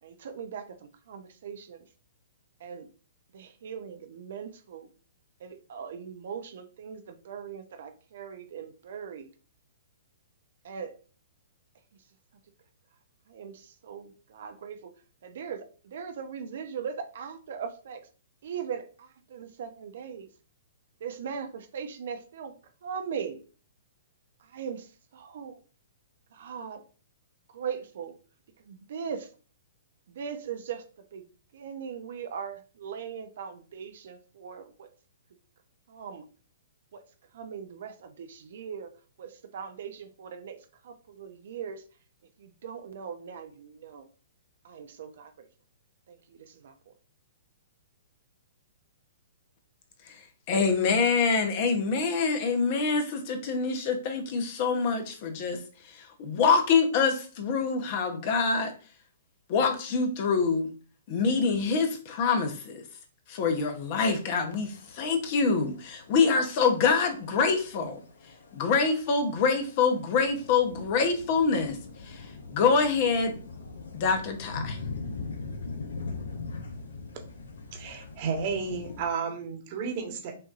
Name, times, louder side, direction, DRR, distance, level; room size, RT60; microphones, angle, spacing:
voice 1, 0.0-1.8 2.6-2.9 3.3-4.9 5.4-9.3 10.6-10.9 13.3-14.9 15.2-18.0 18.4-20.3 21.0-22.5 22.8-23.4 24.5-25.6 26.3-26.8 27.5-28.1 28.6-29.3 30.1-30.8 31.1-31.3 31.5-34.9 35.9-36.3 36.9-37.0 37.3-38.9 39.2-41.8 42.4-44.1 44.6-45.5 46.1-46.9, right 7 dB, 60° right, 0.7 m, -39 dB
voice 2, 50.5-55.6 55.9-58.7 59.5-60.7 61.1-62.8 63.3-68.0 68.5-71.8 72.0-73.4 73.9-74.8, left 5 dB, 45° left, 0.9 m, -25 dB
sound 1, 63.4-79.0, left 4 dB, 75° left, 0.9 m, -42 dB
voice 3, 77.7-80.3, right 5 dB, 45° right, 1.3 m, -32 dB
5.6 x 2.7 x 2.5 m
hypercardioid pair, 125°, 0 cm